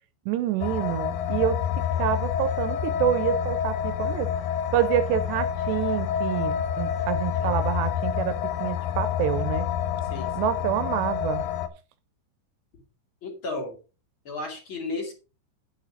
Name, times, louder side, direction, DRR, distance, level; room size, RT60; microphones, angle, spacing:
voice 1, 0.3-1.6 2.0-4.3 4.7-9.7 10.4-11.4, right 11 dB, 80° right, 12 dB, 2.7 m, -27 dB
sound 1, 0.6-11.7, left 9 dB, 80° left, 2.0 m, -28 dB
voice 2, 10.0-10.5 13.2-13.8 14.2-15.1, left 3 dB, 35° left, 2 dB, 2.2 m, -34 dB
9.3 x 8.7 x 3.9 m, 0.32 s
omnidirectional pair, 5.2 m